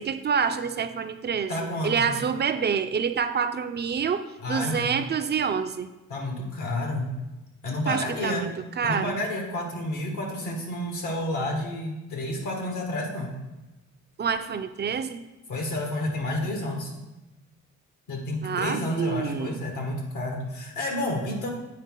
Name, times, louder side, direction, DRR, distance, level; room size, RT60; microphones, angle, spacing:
voice 1, 0.0-4.2 4.5-5.9 7.9-9.2 14.2-15.2 18.4-19.6, right 6 dB, 35° right, 9 dB, 0.4 m, -27 dB
voice 2, 1.5-2.1 4.4-4.9 6.1-7.1 7.6-8.5 8.8-13.3 15.5-16.9 18.1-21.5, left 1 dB, 80° left, 2 dB, 1.7 m, -30 dB
8.5 x 4.9 x 3.8 m, 1.0 s
cardioid pair, 90°, 30 cm